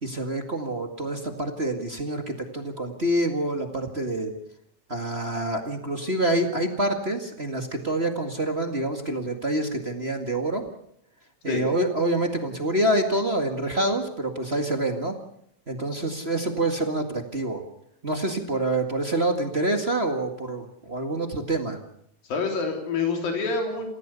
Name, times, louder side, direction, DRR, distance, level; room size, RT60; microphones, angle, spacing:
voice 1, 0.0-4.3 4.9-10.6 11.4-15.1 15.7-17.6 18.0-21.8, right 1 dB, 25° right, 4 dB, 1.4 m, -26 dB
voice 2, 22.3-23.8, left 4 dB, 85° left, 2 dB, 5.3 m, -27 dB
29.0 x 16.5 x 6.9 m, 0.72 s
omnidirectional pair, 4.0 m